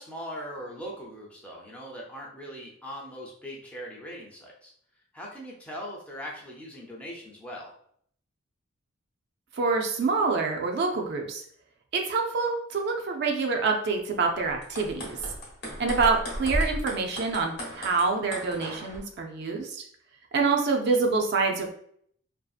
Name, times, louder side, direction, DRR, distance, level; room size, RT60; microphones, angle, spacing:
voice 1, 0.0-4.7 5.1-7.7 15.7-16.1, equal, 5° left, -3 dB, 0.4 m, -40 dB
voice 2, 9.6-11.4 11.9-15.2 15.8-19.8 20.3-21.7, right 4 dB, 55° right, 2 dB, 0.4 m, -26 dB
sound 1, 14.5-19.0, equal, 55° left, 0.9 m, -35 dB
2.6 x 2.4 x 2.4 m, 0.65 s
head